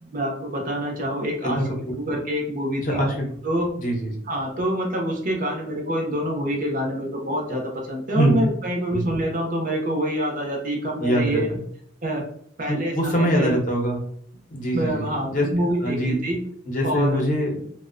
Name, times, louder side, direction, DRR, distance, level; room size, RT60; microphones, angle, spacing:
voice 1, 0.0-1.6 2.0-3.0 3.4-3.7 4.3-11.5 12.0-12.2 12.6-13.5 14.7-16.4 16.8-17.2, right 1 dB, 45° right, 1 dB, 0.5 m, -26 dB
voice 2, 2.8-3.1 3.8-4.2 8.1-8.4 8.9-9.1 11.0-11.6 12.7-14.0 14.5-15.5 15.8-16.2 16.7-17.5, equal, 45° left, 0 dB, 0.6 m, -23 dB
2.5 x 2.0 x 2.4 m, 0.64 s
head